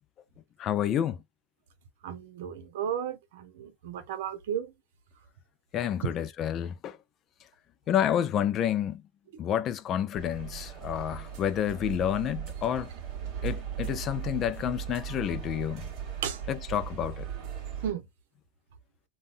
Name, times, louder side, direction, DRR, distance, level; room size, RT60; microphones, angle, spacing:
voice 1, 0.6-1.2 5.7-7.0 7.9-9.0 9.4-12.9 13.4-15.9 16.5-17.3, left 10 dB, 30° left, 0.3 m, -29 dB
voice 2, 2.0-4.7 6.0-6.1 16.2-16.4 17.8-18.1, right 9 dB, 70° right, 0.8 m, -34 dB
sound 1, 10.2-17.9, right 8 dB, 40° right, 1.2 m, -38 dB
3.7 x 2.2 x 2.5 m
supercardioid pair, 155°, 0 cm